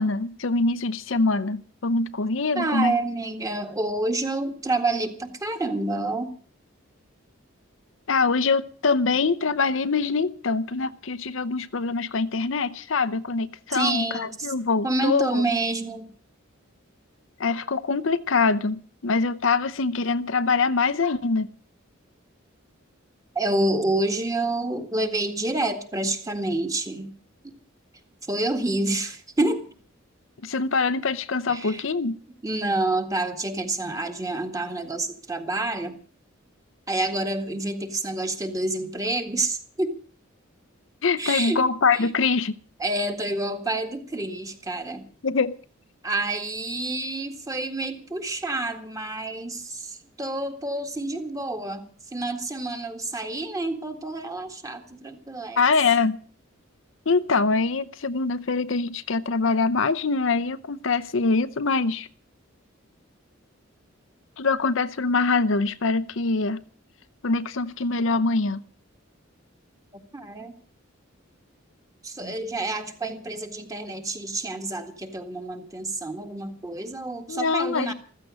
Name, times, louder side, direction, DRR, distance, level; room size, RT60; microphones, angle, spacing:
voice 1, 0.0-3.0 8.1-15.4 17.4-21.5 30.4-32.2 41.0-42.5 45.2-45.6 55.6-56.2 57.1-62.1 64.4-66.6 67.2-68.6 77.3-77.9, left 4 dB, 65° left, 0.7 m, -24 dB
voice 2, 2.6-6.3 13.7-14.5 14.8-16.1 23.4-27.1 28.2-29.7 31.5-31.8 32.4-36.0 36.9-40.0 41.2-41.6 41.9-42.1 42.8-45.1 46.0-55.6 70.1-70.5 72.0-77.9, right 2 dB, 15° right, 1.9 m, -28 dB
15.0 x 14.5 x 6.3 m
head